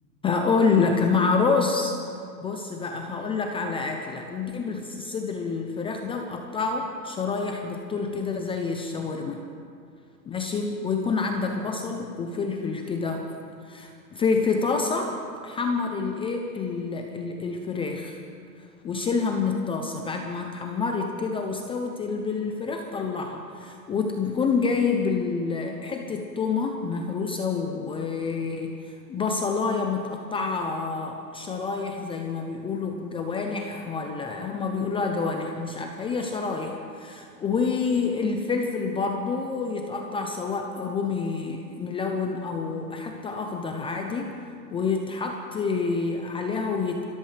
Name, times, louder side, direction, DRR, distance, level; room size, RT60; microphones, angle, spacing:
voice 1, 0.2-1.9 2.4-9.4 10.3-13.3 13.6-15.1 15.4-18.2 18.6-44.3 44.7-47.0, left 4 dB, 10° left, 3 dB, 0.5 m, -28 dB
28.5 x 13.5 x 3.3 m, 2.4 s
hypercardioid pair, 135°, 50 cm